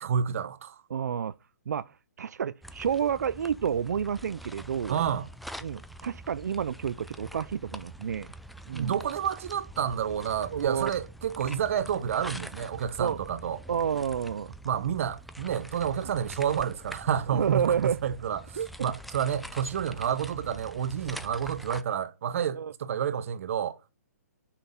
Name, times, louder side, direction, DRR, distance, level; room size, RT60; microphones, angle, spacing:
voice 1, 0.0-0.8 4.9-5.3 8.7-13.6 14.6-23.8, right 8 dB, 55° right, 0.9 m, -30 dB
voice 2, 0.9-1.4 1.7-5.0 5.6-8.3 8.7-9.0 10.5-10.9 13.0-13.2 13.7-14.5 17.3-18.0 18.6-18.9 21.0-21.1 22.5-22.7, right 8 dB, 80° right, 0.4 m, -30 dB
sound 1, 2.6-21.8, equal, ahead, 0.3 m, -45 dB
6.2 x 5.7 x 6.9 m
hypercardioid pair, 150°, 9 cm